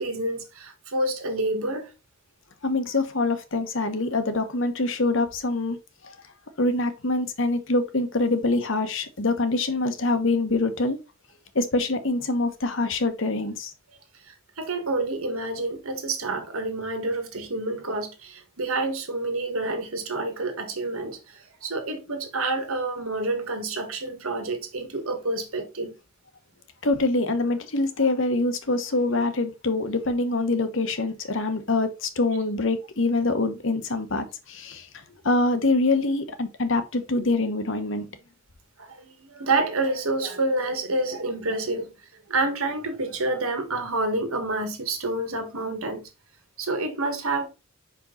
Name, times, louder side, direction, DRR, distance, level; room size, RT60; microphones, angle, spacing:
voice 1, 0.0-1.9 14.6-25.9 38.8-41.9 42.3-46.1 46.6-47.5, right 2 dB, 90° right, 1.7 m, -28 dB
voice 2, 2.6-5.8 6.6-11.0 11.5-13.7 26.8-34.9 35.2-38.1, left 2 dB, 65° left, 1.1 m, -25 dB
5.4 x 5.1 x 3.9 m
head